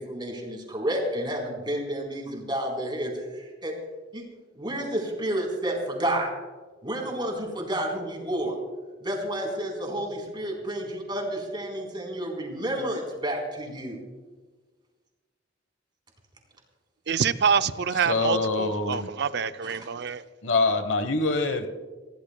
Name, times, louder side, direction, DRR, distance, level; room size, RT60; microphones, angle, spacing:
voice 1, 0.0-3.7 4.1-4.2 4.6-6.3 6.8-8.6 9.0-14.0 19.6-19.8, right 1 dB, 25° right, 4.0 m, -30 dB
voice 2, 17.1-20.2, right 6 dB, 65° right, 0.6 m, -26 dB
voice 3, 18.0-19.1 20.4-21.7, left 3 dB, 80° left, 1.2 m, -25 dB
26.0 x 16.0 x 2.3 m
head